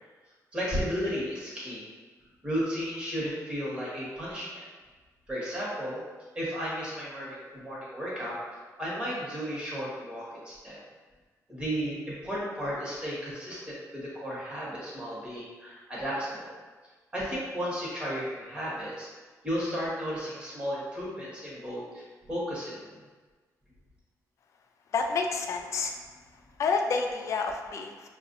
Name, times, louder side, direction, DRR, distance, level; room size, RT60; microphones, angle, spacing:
voice 1, 0.5-1.9 2.4-4.6 5.3-6.0 6.3-8.4 8.8-10.8 11.5-16.5 17.1-19.1 19.4-23.0, equal, 15° right, -7 dB, 1.2 m, -34 dB
voice 2, 24.9-25.9 26.6-28.1, left 4 dB, 55° left, 4 dB, 0.4 m, -29 dB
5.6 x 2.4 x 2.6 m, 1.3 s
wide cardioid pair, 170°, 6 cm